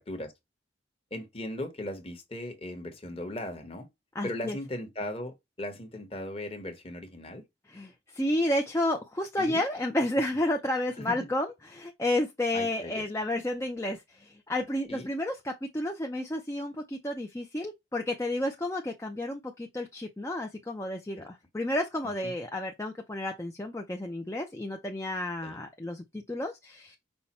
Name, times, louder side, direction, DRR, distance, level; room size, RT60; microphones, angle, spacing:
voice 1, 1.1-3.9 4.2-7.4 9.4-9.6 11.0-11.3 12.5-13.0 14.9-15.1 21.1-21.3 22.2-22.3 25.4-25.6, left 1 dB, 30° left, 1.1 m, -38 dB
voice 2, 4.1-4.6 7.7-27.0, left 1 dB, 15° left, 0.5 m, -31 dB
5.6 x 2.2 x 4.2 m
head